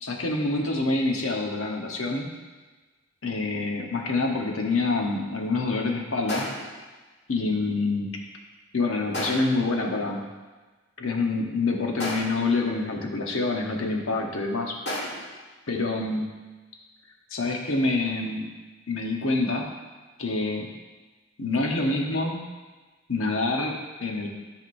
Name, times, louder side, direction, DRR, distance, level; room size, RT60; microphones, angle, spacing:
voice 1, 0.0-2.3 3.2-6.5 7.3-8.2 8.7-10.2 11.0-14.8 15.7-16.2 17.3-18.5 18.9-19.7 20.2-20.7 21.4-22.4 23.1-24.3, left 3 dB, 75° left, 1 dB, 1.0 m, -26 dB
sound 1, 6.3-6.8 9.1-9.7 12.0-12.5 14.9-15.4, left 1 dB, 55° left, 1.5 m, -32 dB
13.0 x 4.9 x 2.6 m, 1.3 s
head